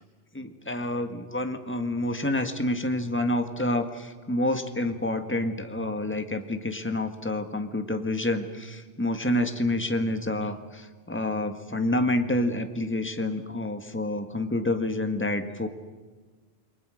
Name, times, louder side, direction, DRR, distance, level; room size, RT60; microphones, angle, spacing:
voice 1, 0.3-15.7, left 1 dB, 10° left, 7 dB, 1.7 m, -28 dB
29.0 x 22.5 x 6.5 m, 1.4 s
omnidirectional pair, 1.2 m